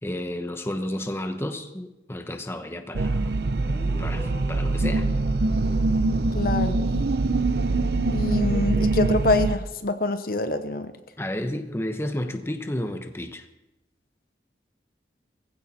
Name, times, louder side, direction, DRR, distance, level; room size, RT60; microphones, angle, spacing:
voice 1, 0.0-3.3 4.0-5.1 11.2-13.5, left 1 dB, 15° left, 7 dB, 1.0 m, -31 dB
sound 1, 2.9-9.6, right 2 dB, 65° right, 0.7 m, -23 dB
Guitar, 3.4-6.9, left 1 dB, 35° left, 3.8 m, -44 dB
voice 2, 6.3-6.9 8.1-10.9, left 3 dB, 55° left, 9 dB, 0.9 m, -25 dB
20.5 x 15.5 x 4.3 m, 0.96 s
head